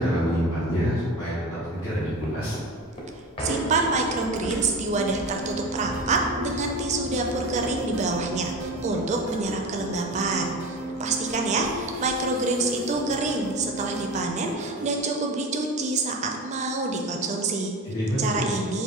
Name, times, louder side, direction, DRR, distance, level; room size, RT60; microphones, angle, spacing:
voice 1, 0.0-2.6 17.8-18.4, equal, 85° left, -11 dB, 1.1 m, -26 dB
sound 1, 1.7-10.4 10.8-10.9 11.2-12.5 13.0-13.1, equal, 25° left, 0.5 m, -38 dB
voice 2, 3.4-17.7 18.2-18.8, right 3 dB, 35° right, 1 dB, 0.4 m, -27 dB
sound 2, 4.9-15.0, equal, 75° right, 0.7 m, -35 dB
4.6 x 2.5 x 3.5 m, 2.2 s
head